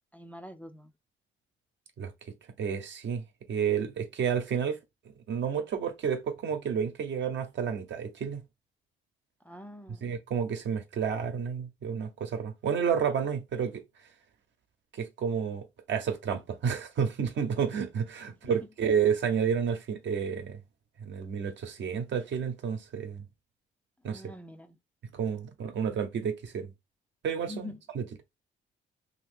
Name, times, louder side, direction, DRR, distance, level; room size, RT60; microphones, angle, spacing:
voice 1, 0.1-0.9 9.4-10.2 18.4-18.6 24.1-24.8 27.5-27.8, left 1 dB, 5° left, 0.4 m, -45 dB
voice 2, 2.6-3.2 3.5-4.8 5.0-8.4 10.0-13.8 14.9-20.6 21.0-23.3 24.0-24.3 25.1-26.7 27.2-28.1, right 7 dB, 65° right, 0.9 m, -30 dB
2.9 x 2.6 x 3.6 m
cardioid pair, 90°, 20 cm